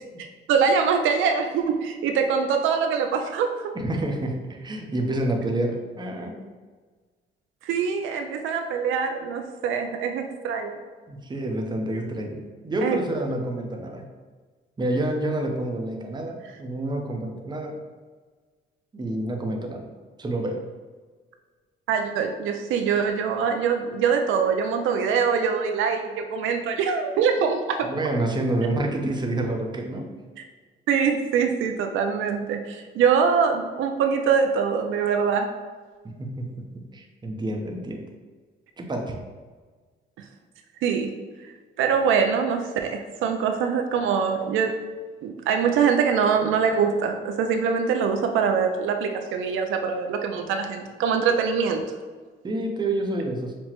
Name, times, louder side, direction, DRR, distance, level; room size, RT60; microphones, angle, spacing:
voice 1, 0.5-3.7 7.6-10.8 12.8-13.0 21.9-27.9 30.9-35.5 40.8-41.1 41.4-41.5 41.8-44.8 45.2-51.8, right 6 dB, 80° right, 5 dB, 0.4 m, -23 dB
voice 2, 3.7-6.3 11.1-14.1 14.8-17.8 18.9-19.9 20.2-20.6 27.9-30.1 36.2-36.7 36.9-38.0 38.8-39.1 52.4-53.5, right 1 dB, 20° right, 2 dB, 0.6 m, -28 dB
5.7 x 2.1 x 2.9 m, 1.4 s
cardioid pair, 90°, 20 cm